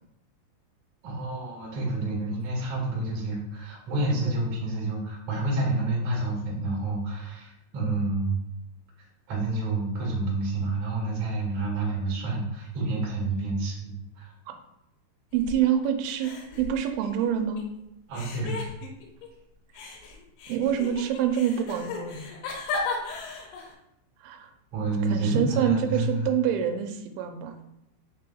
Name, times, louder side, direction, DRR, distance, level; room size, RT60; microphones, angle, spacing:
voice 1, 1.0-8.4 9.3-14.3 18.1-18.6 24.7-26.2, right 2 dB, 55° right, -5 dB, 2.5 m, -29 dB
sound 1, 15.3-15.9 16.2-17.6 18.1-19.3 19.7-23.8, left 4 dB, 85° left, 3.1 m, -36 dB
voice 2, 15.3-16.3 16.6-17.6 20.5-22.3 24.2-24.5 25.1-27.6, right 9 dB, 85° right, 5 dB, 2.8 m, -26 dB
6.5 x 3.3 x 2.2 m, 0.84 s
omnidirectional pair, 5.2 m